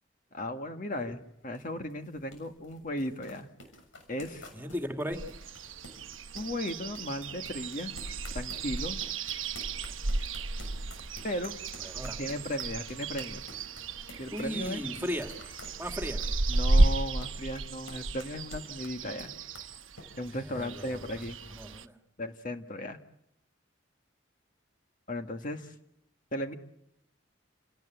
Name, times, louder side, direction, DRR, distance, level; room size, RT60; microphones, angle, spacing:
voice 1, 0.3-3.5 4.1-4.5 6.3-7.9 8.3-9.0 11.2-11.6 12.2-13.4 14.2-14.8 16.5-19.3 20.2-21.4 22.2-23.0 25.1-25.7 26.3-26.5, left 1 dB, 40° left, 6 dB, 1.7 m, -36 dB
sound 1, 1.0-20.1, left 1 dB, 80° left, 6.9 m, -51 dB
voice 2, 4.5-5.2 11.8-12.2 14.3-15.3 15.8-16.2 20.4-22.0, equal, 10° right, 4 dB, 2.5 m, -37 dB
sound 2, 5.1-21.9, right 2 dB, 85° right, 1.1 m, -33 dB
30.0 x 18.5 x 9.2 m, 0.81 s
head